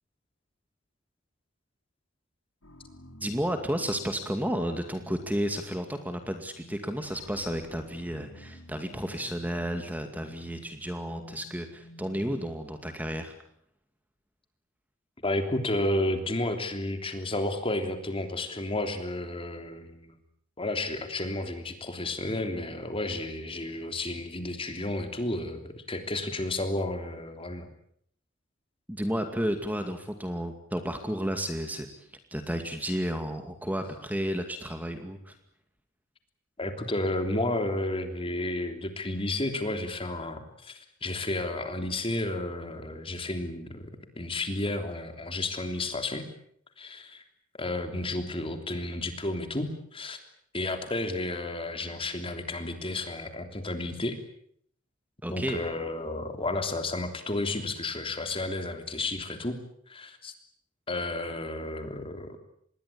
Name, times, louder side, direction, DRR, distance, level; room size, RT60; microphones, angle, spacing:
sound 1, 2.6-12.6, left 1 dB, 85° left, 5.7 m, -51 dB
voice 1, 3.2-13.3 28.9-35.3 55.2-55.6, equal, 10° right, 6 dB, 2.2 m, -32 dB
voice 2, 15.2-20.2 20.6-27.7 36.6-43.8 44.1-46.3 46.8-47.2 47.6-50.2 50.5-54.2 55.3-59.6 59.9-60.3 60.9-62.4, left 2 dB, 25° left, 7 dB, 3.3 m, -32 dB
26.5 x 21.0 x 8.7 m, 0.67 s
head